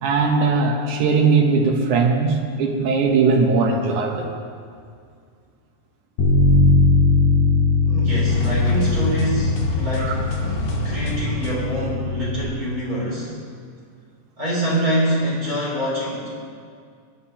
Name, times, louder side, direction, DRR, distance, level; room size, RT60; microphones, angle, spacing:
voice 1, 0.0-4.3 10.0-10.1, right 4 dB, 80° right, 2 dB, 2.6 m, -19 dB
Bass guitar, 6.2-12.4, left 3 dB, 90° left, 3.0 m, -20 dB
voice 2, 7.8-10.1 10.8-13.3 14.4-16.3, right 1 dB, 30° right, -7 dB, 3.7 m, -25 dB
sound 1, 8.2-12.0, left 1 dB, 70° left, 2.6 m, -27 dB
20.0 x 11.0 x 2.9 m, 2.2 s
omnidirectional pair, 3.5 m